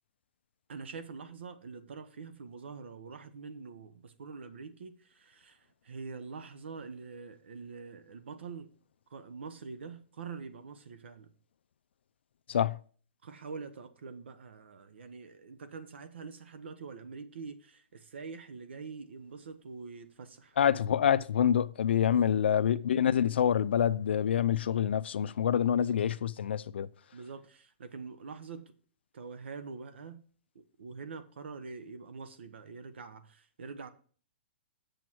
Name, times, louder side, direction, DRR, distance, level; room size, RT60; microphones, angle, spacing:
voice 1, 0.7-8.7 9.1-11.3 13.2-20.6 22.1-22.4 25.7-26.0 27.1-28.7 29.1-30.2 30.5-33.9, right 5 dB, 80° right, 1.2 m, -45 dB
voice 2, 20.6-26.9, left 9 dB, 70° left, 0.5 m, -26 dB
8.0 x 7.0 x 4.6 m
hypercardioid pair, 175°, 6 cm